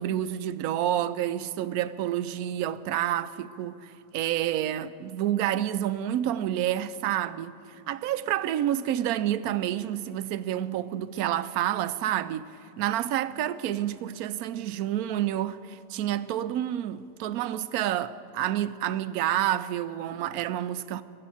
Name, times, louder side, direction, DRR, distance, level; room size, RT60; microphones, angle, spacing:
voice 1, 0.0-7.6 7.9-21.0, right 12 dB, 70° right, 0.9 m, -29 dB
22.5 x 7.8 x 7.6 m
omnidirectional pair, 1.9 m